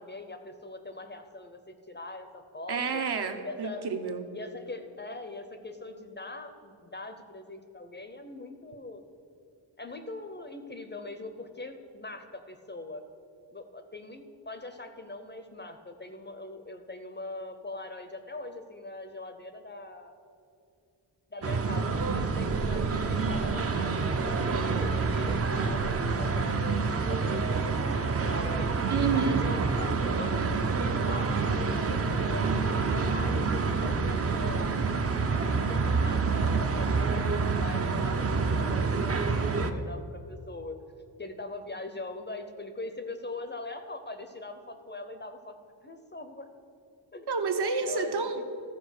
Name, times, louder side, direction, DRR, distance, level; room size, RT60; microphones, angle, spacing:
voice 1, 0.0-3.0 3.4-3.9 4.3-9.0 9.8-13.0 13.5-20.1 21.3-24.0 24.3-26.8 27.1-28.8 29.1-34.7 35.6-40.8 41.2-45.6 45.8-46.5 47.1-47.3 47.8-48.4, left 2 dB, 25° left, 7 dB, 0.6 m, -42 dB
voice 2, 2.7-4.2 28.9-29.5 47.3-48.4, right 5 dB, 60° right, 6 dB, 0.8 m, -29 dB
sound 1, 21.4-39.7, right 4 dB, 35° right, 0.5 m, -27 dB
14.0 x 4.7 x 6.4 m, 2.5 s
wide cardioid pair, 145°, 45 cm